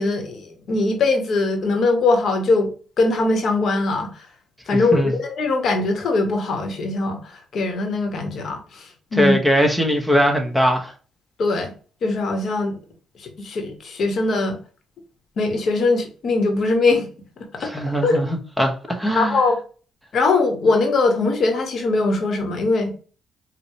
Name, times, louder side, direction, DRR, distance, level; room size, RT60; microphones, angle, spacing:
voice 1, 0.0-2.7 3.0-4.2 4.7-9.4 11.4-11.7 12.0-12.8 13.2-14.6 15.4-17.1 17.4-18.1 19.1-19.6 20.1-22.9, left 3 dB, 60° left, 0.9 m, -21 dB
voice 2, 4.7-5.1 9.1-10.9 17.6-19.4, equal, ahead, 0.9 m, -20 dB
4.6 x 2.1 x 2.7 m
cardioid pair, 90°, 0 cm